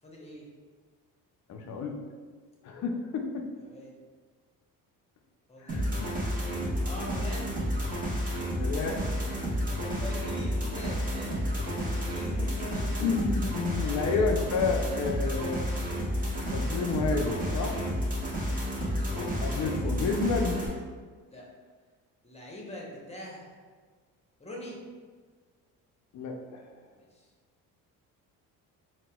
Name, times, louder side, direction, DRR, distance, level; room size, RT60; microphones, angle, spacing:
voice 1, 0.0-0.5 3.6-4.0 5.5-7.9 9.8-13.0 13.8-14.4 18.1-18.4 21.3-21.4 22.2-23.6 24.4-24.8 26.9-27.3, left 1 dB, 15° left, -2 dB, 0.8 m, -44 dB
voice 2, 1.5-2.0 2.6-3.5 5.6-6.2 8.6-9.0 13.0-15.6 16.5-17.8 19.1-20.6 26.1-26.6, left 4 dB, 45° left, 3 dB, 0.5 m, -30 dB
sound 1, 5.7-20.7, equal, 20° right, 1.1 m, -31 dB
4.0 x 2.2 x 2.3 m, 1.5 s
supercardioid pair, 65°, 41 cm